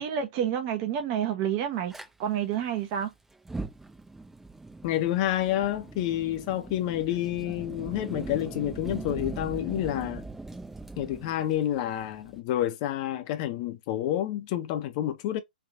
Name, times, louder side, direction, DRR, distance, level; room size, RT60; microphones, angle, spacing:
voice 1, 0.0-1.9 2.2-3.1, right 9 dB, 35° right, 0.9 m, -29 dB
Fire, 1.9-2.1 3.3-12.4, right 3 dB, 5° right, 0.8 m, -41 dB
voice 2, 4.8-10.2 11.0-15.4, left 12 dB, 40° left, 0.6 m, -29 dB
3.4 x 2.7 x 3.6 m
figure-of-eight pair, 125°, 5 cm